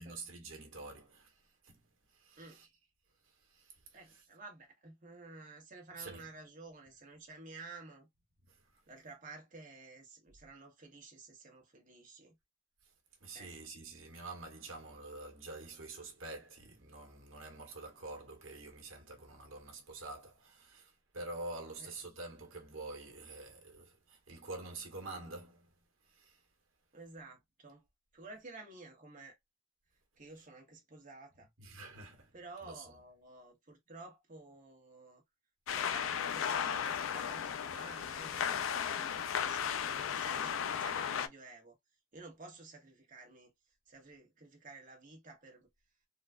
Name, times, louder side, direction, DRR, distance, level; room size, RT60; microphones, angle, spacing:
voice 1, 0.0-1.8 2.1-2.7 3.2-4.2 6.0-6.2 8.4-8.7 12.8-12.9 13.2-25.7 26.0-26.4 31.6-32.3 32.6-32.9, right 2 dB, 85° right, 1.2 m, -47 dB
voice 2, 3.9-8.1 8.9-12.3 13.3-13.5 21.8-21.9 26.9-27.8 28.1-29.4 30.2-31.5 32.3-35.2 35.7-41.7 42.1-43.5 43.9-45.7, right 3 dB, 45° right, 1.2 m, -52 dB
sound 1, 35.7-41.3, left 8 dB, 80° left, 0.4 m, -35 dB
3.8 x 2.4 x 2.2 m
head